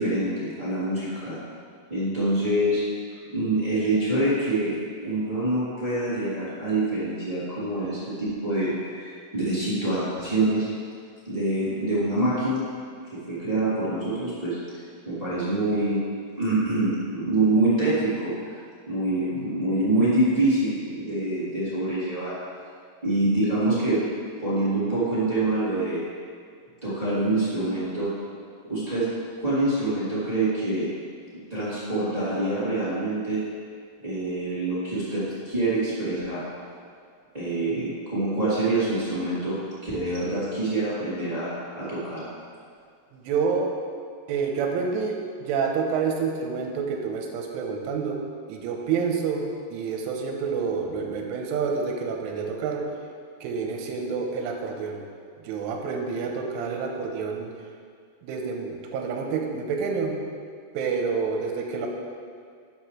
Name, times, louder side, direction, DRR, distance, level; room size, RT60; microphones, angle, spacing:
voice 1, 0.0-1.4 1.9-2.8 3.3-10.7 11.2-12.6 13.1-16.0 16.4-18.3 18.9-22.3 23.0-24.0 24.4-26.0 26.8-28.1 28.7-29.1 29.4-30.9 31.5-33.4 34.0-36.4 37.3-39.5 39.8-42.2, right 2 dB, 20° right, -12 dB, 1.0 m, -25 dB
voice 2, 43.1-43.7 44.3-48.2 48.5-49.4 49.7-52.8 53.4-55.0 55.4-57.5 58.2-60.2 60.7-61.9, right 5 dB, 80° right, 2 dB, 3.3 m, -28 dB
12.0 x 8.5 x 3.3 m, 2.2 s
omnidirectional pair, 5.8 m